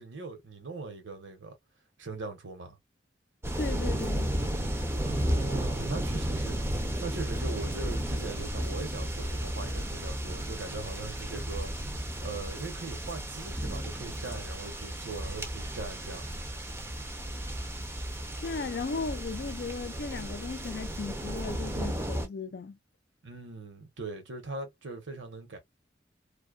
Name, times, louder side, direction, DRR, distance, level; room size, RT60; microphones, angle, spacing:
voice 1, 0.0-1.5 2.0-2.8 5.0-6.6 7.0-16.2 23.2-25.6, right 3 dB, 75° right, 1.0 m, -40 dB
sound 1, 3.4-22.3, right 1 dB, 15° right, 0.5 m, -33 dB
voice 2, 3.6-4.4 18.4-22.8, left 4 dB, 55° left, 0.4 m, -36 dB
2.6 x 2.3 x 2.4 m
head